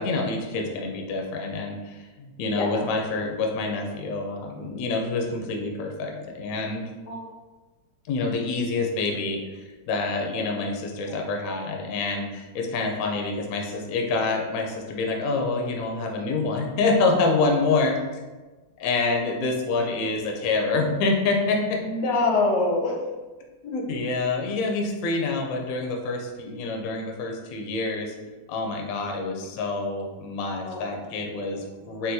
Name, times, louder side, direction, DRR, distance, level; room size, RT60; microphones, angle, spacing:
voice 1, 0.0-6.8 8.1-18.0 18.8-21.8 23.6-28.1 28.5-32.1, left 3 dB, 70° left, 1 dB, 0.8 m, -27 dB
voice 2, 21.8-23.0 28.9-29.4 30.6-31.0 31.4-32.1, left 3 dB, 90° left, -1 dB, 1.3 m, -27 dB
3.9 x 2.3 x 2.6 m, 1.2 s
omnidirectional pair, 1.9 m